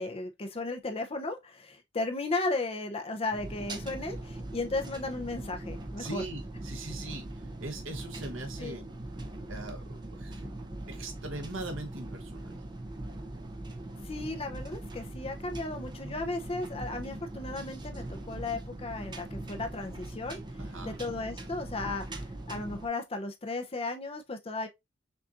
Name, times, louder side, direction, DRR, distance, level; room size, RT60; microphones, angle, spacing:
voice 1, 0.0-6.2 8.6-8.8 14.0-20.4 20.8-24.7, left 2 dB, 30° left, 0.7 m, -35 dB
sound 1, 3.3-22.9, right 1 dB, 25° right, 0.6 m, -41 dB
voice 2, 6.0-7.2 7.6-8.8 9.5-10.5 10.9-12.5 20.6-21.0, right 2 dB, 80° right, 1.1 m, -41 dB
6.0 x 2.6 x 2.5 m
head